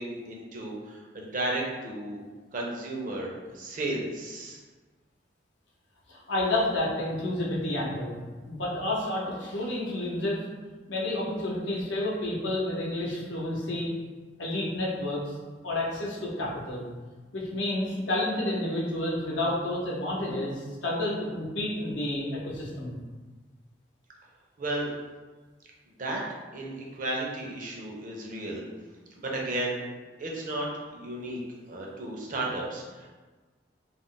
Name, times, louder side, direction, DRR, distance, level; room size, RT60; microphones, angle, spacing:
voice 1, 0.0-2.2 2.5-4.6 24.6-24.9 26.0-26.2 26.5-28.6 29.2-29.8 30.2-31.4 31.7-33.1, right 2 dB, 45° right, -2 dB, 0.6 m, -33 dB
voice 2, 6.1-8.2 8.4-10.4 10.9-13.9 14.4-15.3 15.6-16.8 17.3-23.0, left 1 dB, 80° left, -4 dB, 0.7 m, -30 dB
2.4 x 2.1 x 3.7 m, 1.3 s
head